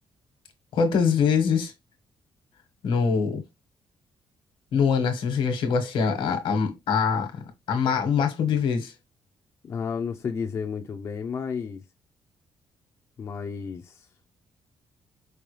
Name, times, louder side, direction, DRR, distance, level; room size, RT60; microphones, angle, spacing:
voice 1, 0.7-1.7 2.8-3.4 4.7-7.4 7.7-8.9, left 6 dB, 80° left, 1.3 m, -23 dB
voice 2, 9.6-11.8 13.2-14.0, left 6 dB, 35° left, 0.5 m, -32 dB
5.3 x 2.2 x 3.2 m
cardioid pair, 170°, 9 cm